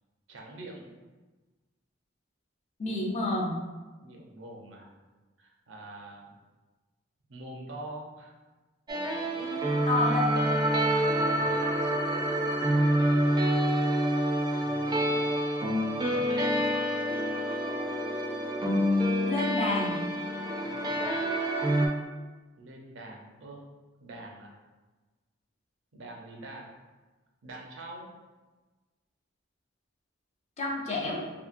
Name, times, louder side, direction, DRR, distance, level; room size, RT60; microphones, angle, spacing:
voice 1, 0.3-0.9 4.0-4.9 5.4-6.3 7.3-8.3 9.3-9.8 11.1-11.7 14.6-15.4 15.9-16.6 20.6-21.3 22.6-23.6 24.0-24.5 25.9-26.7 27.4-28.1, right 1 dB, 75° right, -1 dB, 0.6 m, -44 dB
voice 2, 2.8-3.5 9.9-10.3 19.2-20.0 30.6-31.3, left 2 dB, 35° left, -2 dB, 0.5 m, -29 dB
sound 1, 8.9-21.9, equal, 20° right, 0.4 m, -27 dB
2.8 x 2.6 x 2.4 m, 1.2 s
head